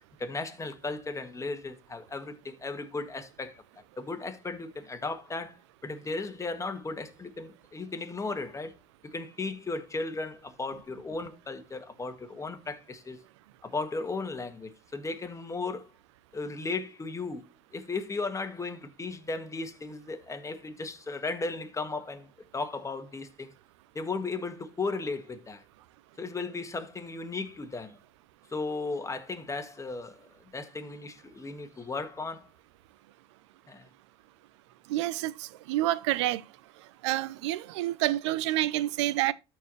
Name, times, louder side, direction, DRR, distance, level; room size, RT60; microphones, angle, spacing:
voice 1, 0.2-3.6 4.0-8.7 9.0-13.2 13.6-15.9 16.3-17.4 17.7-23.5 23.9-25.6 26.2-28.0 28.5-32.5 33.7-33.9, left 3 dB, 20° left, 1.7 m, -36 dB
voice 2, 34.9-36.4 37.0-39.3, right 15 dB, 90° right, 0.5 m, -28 dB
13.5 x 4.6 x 3.2 m
supercardioid pair, 85°, 14 cm